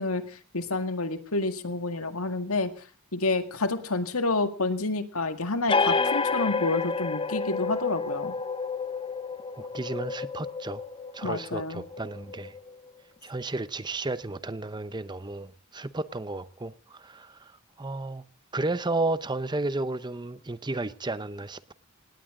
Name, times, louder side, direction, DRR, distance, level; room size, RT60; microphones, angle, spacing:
voice 1, 0.0-2.7 3.1-8.3 11.2-11.8, left 3 dB, 85° left, 1.9 m, -29 dB
sound 1, 5.7-12.9, left 4 dB, 25° left, 0.8 m, -30 dB
voice 2, 9.6-10.8 11.1-12.5 13.2-18.2 18.5-21.7, right 2 dB, 20° right, 0.7 m, -33 dB
18.5 x 18.5 x 3.8 m
head